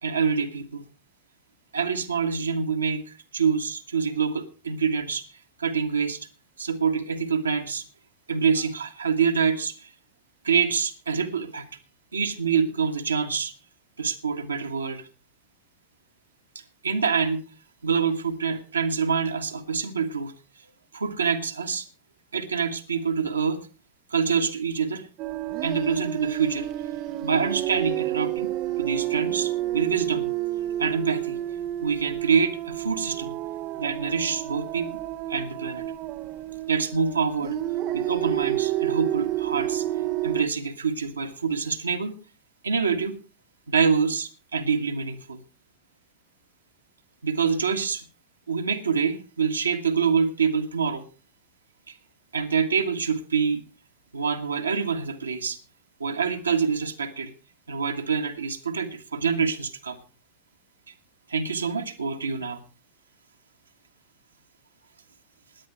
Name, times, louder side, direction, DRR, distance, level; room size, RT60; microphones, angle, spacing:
voice 1, 0.0-0.8 1.7-6.3 6.6-7.8 8.3-9.9 10.4-11.7 12.1-13.5 14.0-15.1 16.5-17.4 17.8-20.6 20.9-21.9 22.3-23.7 24.1-25.1 25.6-26.7 27.2-28.5 28.8-30.3 30.8-31.4 31.8-33.4 33.8-35.0 35.3-35.8 36.7-37.6 37.9-39.9 40.2-42.1 42.6-43.2 43.7-45.4 47.2-48.0 48.5-51.0 51.9-52.0 52.3-53.6 54.1-55.6 56.0-57.3 57.7-60.0 61.3-62.6, right 6 dB, 75° right, 4 dB, 1.5 m, -26 dB
sound 1, 25.2-40.4, right 14 dB, 40° right, 0.6 m, -29 dB
17.0 x 10.5 x 4.7 m, 0.35 s
figure-of-eight pair, 90°, 0 cm